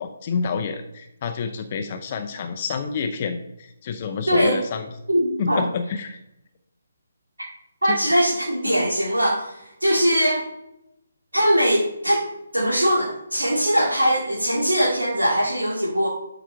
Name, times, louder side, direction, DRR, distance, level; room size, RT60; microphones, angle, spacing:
voice 1, 0.0-4.9 5.4-6.2 7.9-8.0, left 5 dB, 35° left, 6 dB, 0.6 m, -28 dB
voice 2, 4.3-4.6 5.1-5.6 7.8-10.5 11.3-12.3 12.5-16.1, equal, 80° right, -5 dB, 2.1 m, -21 dB
12.0 x 5.0 x 3.4 m, 0.84 s
figure-of-eight pair, 140°, 0 cm